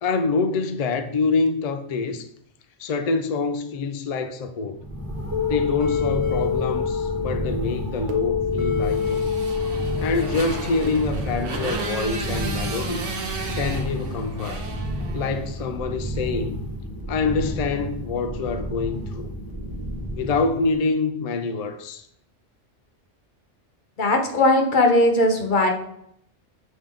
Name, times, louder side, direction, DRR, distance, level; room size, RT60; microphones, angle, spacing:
voice 1, 0.0-2.3 2.8-4.8 5.5-9.2 10.0-13.1 13.5-14.6 15.1-16.7 17.1-19.3 20.1-22.1, left 4 dB, 70° left, 0.3 m, -26 dB
sound 1, 4.8-20.8, equal, 20° left, 1.0 m, -31 dB
sound 2, 5.3-10.9, left 7 dB, 65° right, 1.1 m, -26 dB
Motorcycle, 8.8-15.5, right 4 dB, 80° right, 1.3 m, -34 dB
voice 2, 24.0-25.7, left 1 dB, 45° left, 1.0 m, -18 dB
7.3 x 3.5 x 3.7 m
omnidirectional pair, 1.2 m